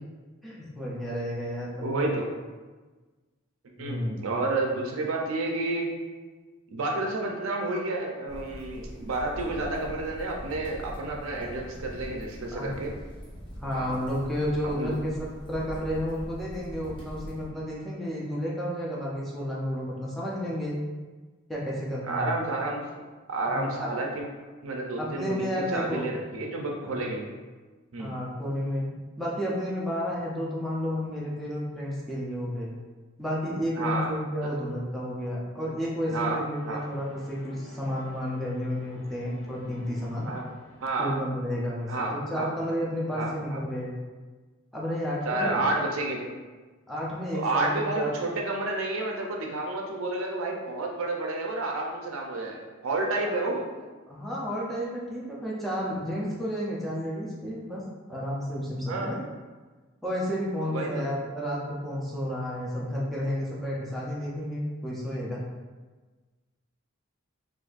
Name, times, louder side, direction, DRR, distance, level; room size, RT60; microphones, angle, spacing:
voice 1, 0.4-1.7 2.0-2.1 3.8-4.2 12.5-12.7 13.6-15.1 15.5-20.7 21.5-22.4 23.5-23.9 25.0-26.1 26.9-27.1 28.0-28.8 29.2-32.7 33.2-40.3 41.0-43.9 44.7-45.6 46.9-48.2 53.2-53.3 54.1-57.8 58.1-59.2 60.0-65.4, equal, ahead, -6 dB, 0.5 m, -31 dB
voice 2, 1.8-2.3 3.8-5.9 6.7-12.9 13.7-14.0 14.8-14.9 22.0-22.8 23.3-24.2 24.6-27.3 27.9-28.1 33.8-34.1 36.1-36.4 36.6-36.8 40.3-40.4 40.8-41.1 41.9-42.5 43.1-43.6 45.3-46.3 47.3-53.7 58.9-59.2 60.6-61.0, right 2 dB, 70° right, 0 dB, 0.5 m, -30 dB
sound 1, 8.3-17.5, equal, 25° left, 0.9 m, -42 dB
sound 2, 36.5-41.1, left 2 dB, 75° left, 0.5 m, -52 dB
3.9 x 2.5 x 2.4 m, 1.3 s
head